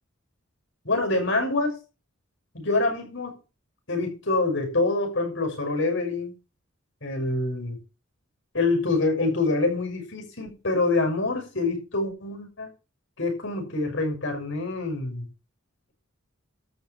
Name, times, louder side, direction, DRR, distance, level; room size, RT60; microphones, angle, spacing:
voice 1, 0.8-1.8 2.5-3.4 3.9-6.3 7.0-7.8 8.5-12.7 13.2-15.3, left 2 dB, 65° left, 4 dB, 6.3 m, -26 dB
13.0 x 5.0 x 8.6 m, 0.31 s
head